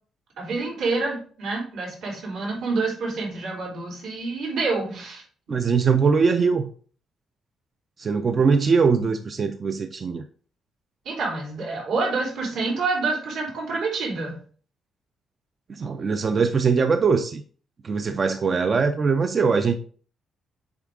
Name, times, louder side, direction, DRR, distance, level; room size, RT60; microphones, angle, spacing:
voice 1, 0.4-5.2 11.1-14.4, right 3 dB, 80° right, 3.6 m, -27 dB
voice 2, 5.5-6.7 8.0-10.2 15.7-17.4 17.8-19.8, right 5 dB, 35° right, 0.4 m, -21 dB
7.2 x 4.6 x 3.6 m
cardioid pair, 155°, 0 cm